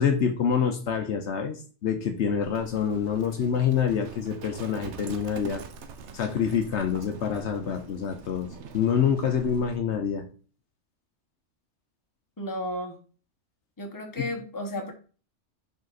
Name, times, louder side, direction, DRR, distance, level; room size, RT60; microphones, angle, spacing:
voice 1, 0.0-5.6 6.1-8.5 8.7-10.3, left 7 dB, 65° left, 5 dB, 1.0 m, -26 dB
Livestock farm animals working animals, 2.4-9.8, right 5 dB, 70° right, 1.0 m, -44 dB
voice 2, 12.4-12.9 13.8-14.9, left 1 dB, 15° left, 2 dB, 1.0 m, -33 dB
5.2 x 4.9 x 4.0 m, 0.38 s
omnidirectional pair, 1.3 m